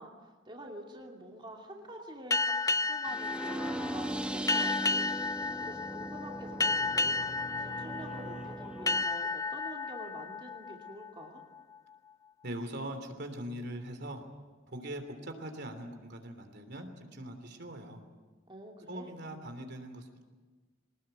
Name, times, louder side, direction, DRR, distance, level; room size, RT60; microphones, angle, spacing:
voice 1, 0.0-7.3 7.6-11.4 18.5-19.1, right 1 dB, 25° right, 0 dB, 2.7 m, -47 dB
sound 1, 2.3-11.6, left 3 dB, 20° left, 0.6 m, -33 dB
sound 2, 3.0-9.0, right 1 dB, 5° right, 1.0 m, -39 dB
Bowed string instrument, 5.5-8.7, right 2 dB, 85° right, 6.7 m, -49 dB
voice 2, 12.4-14.2 14.7-18.0 18.9-20.2, right 1 dB, 60° right, 6 dB, 3.3 m, -41 dB
24.0 x 19.5 x 9.2 m, 1.3 s
head